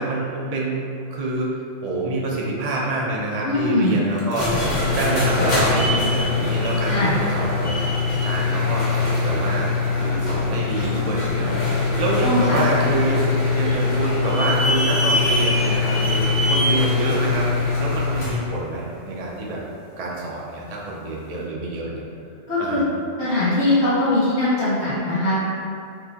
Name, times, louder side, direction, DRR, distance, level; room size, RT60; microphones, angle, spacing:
voice 1, 0.0-13.2 13.5-19.6 20.0-22.0 22.6-22.8, right 2 dB, 40° right, -4 dB, 0.6 m, -27 dB
voice 2, 3.4-4.0 6.9-7.1 12.2-12.6 22.5-22.8 23.2-25.4, left 2 dB, 60° left, -11 dB, 1.3 m, -21 dB
sound 1, 4.2-18.4, left 3 dB, 40° left, 0.9 m, -22 dB
sound 2, 11.4-18.1, left 1 dB, 85° left, 1.3 m, -33 dB
5.8 x 2.9 x 2.9 m, 2.5 s
omnidirectional pair, 1.3 m